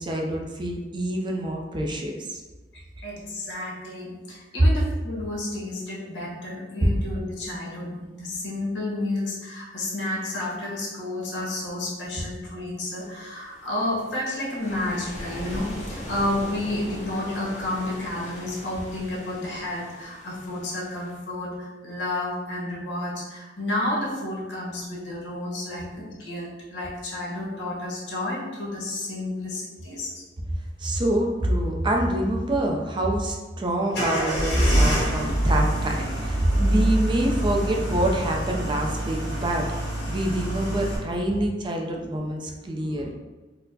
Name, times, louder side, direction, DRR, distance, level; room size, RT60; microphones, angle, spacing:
voice 1, 0.0-2.4 30.8-39.7 40.1-43.1, right 1 dB, 25° right, 0 dB, 0.4 m, -26 dB
voice 2, 2.7-30.2 41.3-41.4 41.9-42.1 42.7-43.0, left 1 dB, 80° left, -5 dB, 1.1 m, -31 dB
sound 1, 12.9-21.2, equal, 40° left, 1.0 m, -40 dB
sound 2, 33.9-41.0, right 1 dB, 65° left, 1.4 m, -25 dB
4.2 x 2.0 x 2.7 m, 1.2 s
head